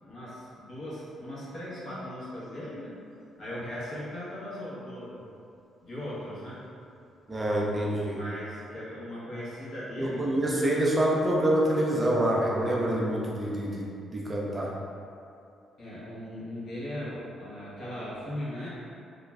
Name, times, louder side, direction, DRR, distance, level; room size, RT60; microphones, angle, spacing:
voice 1, 0.0-2.9 3.4-5.2 5.8-6.6 8.1-10.3 15.8-18.7, left 1 dB, 55° left, -9 dB, 1.0 m, -38 dB
voice 2, 7.3-8.2 10.0-14.7, right 1 dB, 25° right, -3 dB, 0.5 m, -26 dB
2.4 x 2.2 x 3.1 m, 2.6 s
cardioid pair, 90°, 0 cm